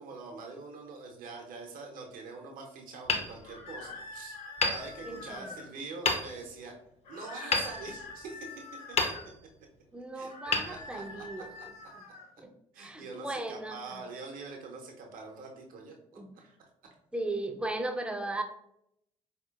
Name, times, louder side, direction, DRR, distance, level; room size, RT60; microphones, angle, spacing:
voice 1, 0.0-4.4 4.6-6.7 7.1-8.5 10.1-11.7 12.7-16.0 16.4-16.7, right 4 dB, 55° right, 2 dB, 0.7 m, -44 dB
Hammer, 3.0-4.1 4.6-5.5 6.0-6.7 7.5-8.5 8.9-9.7 10.5-11.4, left 3 dB, 40° left, 0.6 m, -32 dB
sound 1, 3.4-5.7 7.1-9.3 10.2-12.3, left 3 dB, 60° left, 1.1 m, -46 dB
voice 2, 5.0-5.5 9.9-11.5 12.4-13.8 16.1-16.3 17.1-18.4, right 2 dB, 5° right, 5 dB, 0.5 m, -36 dB
4.3 x 2.8 x 2.3 m, 0.76 s
figure-of-eight pair, 45°, 17 cm